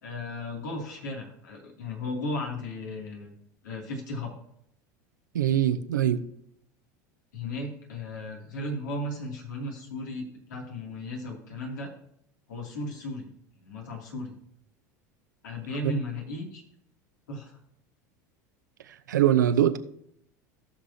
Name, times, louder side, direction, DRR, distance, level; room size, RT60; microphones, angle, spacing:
voice 1, 0.0-3.3 3.6-4.3 7.3-10.2 10.5-11.9 12.5-13.3 13.6-14.3 15.4-16.6 17.3-17.6, left 2 dB, 80° left, 0 dB, 2.6 m, -35 dB
voice 2, 5.3-6.2 15.8-15.9 19.1-19.8, right 11 dB, 85° right, 9 dB, 0.7 m, -22 dB
17.5 x 6.2 x 2.7 m, 0.72 s
hypercardioid pair, 85°, 10 cm